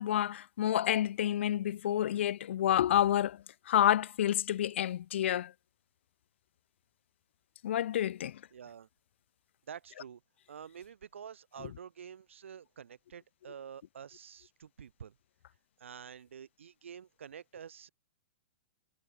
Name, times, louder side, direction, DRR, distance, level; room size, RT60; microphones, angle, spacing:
voice 1, 0.0-5.5 7.6-8.4, left 11 dB, 70° left, 0.5 m, -29 dB
voice 2, 8.5-8.9 9.7-10.2 10.5-15.1 15.8-17.9, right 8 dB, 90° right, 3.2 m, -48 dB
hypercardioid pair, 145°, 7 cm